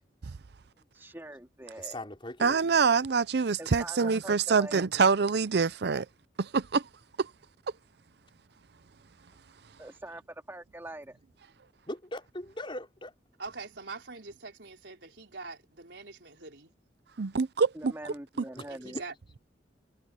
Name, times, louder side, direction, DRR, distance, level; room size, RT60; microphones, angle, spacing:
voice 1, 0.9-2.1 3.6-4.9 9.8-11.2 17.7-19.0, right 1 dB, 15° right, 2.6 m, -43 dB
voice 2, 1.8-2.6 11.9-13.1 18.6-19.0, left 1 dB, 30° left, 4.9 m, -40 dB
voice 3, 2.4-6.1 6.4-6.9 7.2-7.3 17.2-17.9, right 5 dB, 65° right, 0.6 m, -25 dB
voice 4, 13.4-16.7 18.7-19.1, right 3 dB, 90° right, 4.1 m, -44 dB
head